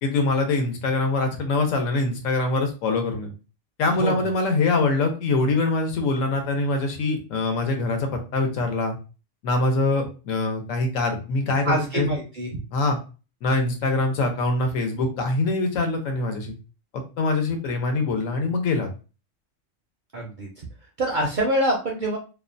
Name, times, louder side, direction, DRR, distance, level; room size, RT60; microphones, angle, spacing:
voice 1, 0.0-3.3 3.8-9.0 9.4-12.1 12.7-13.0 13.4-16.5 17.2-18.9, left 3 dB, 80° left, 4 dB, 1.1 m, -24 dB
voice 2, 11.6-12.5 20.1-20.7 21.0-22.2, right 1 dB, 60° right, 0 dB, 0.5 m, -25 dB
2.6 x 2.1 x 2.5 m, 0.33 s
omnidirectional pair, 1.3 m